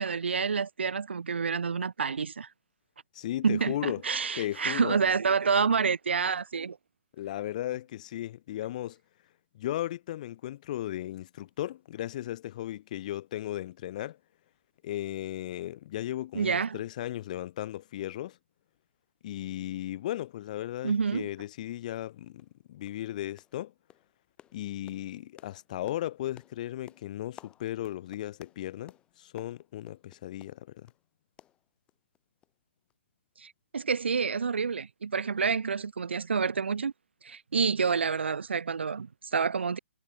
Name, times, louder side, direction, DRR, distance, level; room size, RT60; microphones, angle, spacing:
voice 1, 0.0-2.5 3.4-6.8 16.3-16.8 20.8-21.3 33.4-36.9 37.2-39.8, right 5 dB, 60° right, 0.6 m, -28 dB
voice 2, 3.1-4.0 4.4-5.0 7.1-9.0 9.5-14.2 14.8-18.4 19.2-23.7 24.5-30.9, left 13 dB, 35° left, 0.8 m, -36 dB
sound 1, 22.4-22.6 22.8-23.1 23.4-23.6 23.9-31.0 31.4-32.2 32.4-32.5 32.9-33.0, left 11 dB, 15° left, 1.1 m, -57 dB
figure-of-eight pair, 130°, 7 cm